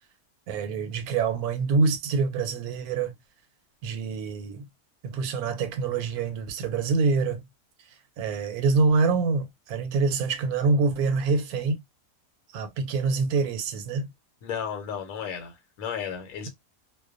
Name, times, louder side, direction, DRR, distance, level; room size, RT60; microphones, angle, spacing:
voice 1, 0.5-3.2 3.8-4.7 5.0-7.4 8.2-11.8 12.5-14.1, right 4 dB, 90° right, 1.1 m, -25 dB
voice 2, 14.4-16.5, left 7 dB, 80° left, 1.1 m, -34 dB
2.4 x 2.1 x 2.4 m
omnidirectional pair, 1.5 m